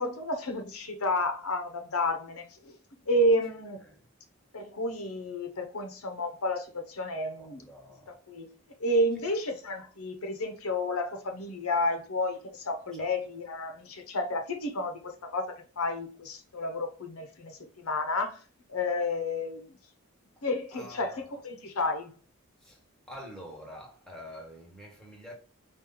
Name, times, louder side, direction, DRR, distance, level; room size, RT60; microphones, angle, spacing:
voice 1, 0.0-2.7 3.1-3.9 4.5-7.6 8.3-8.5 8.8-18.4 18.7-19.7 20.4-22.1, left 1 dB, 80° left, 0.9 m, -31 dB
voice 2, 7.4-8.2 13.0-13.1 20.7-21.3 22.6-22.8 23.1-25.3, equal, 5° left, 1.2 m, -46 dB
4.7 x 2.7 x 3.8 m
head